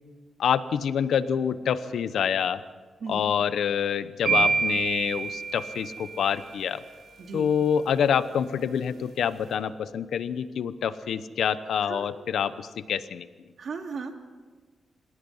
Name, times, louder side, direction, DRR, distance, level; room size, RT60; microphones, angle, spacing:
voice 1, 0.4-2.6 3.1-6.8 7.3-13.3, left 8 dB, 90° left, 13 dB, 0.9 m, -27 dB
sound 1, 4.3-6.4, right 4 dB, 80° right, 6.1 m, -27 dB
voice 2, 13.6-14.2, right 4 dB, 65° right, 4 dB, 2.6 m, -36 dB
28.0 x 17.0 x 5.6 m, 1.4 s
cardioid pair, 95°, 0 cm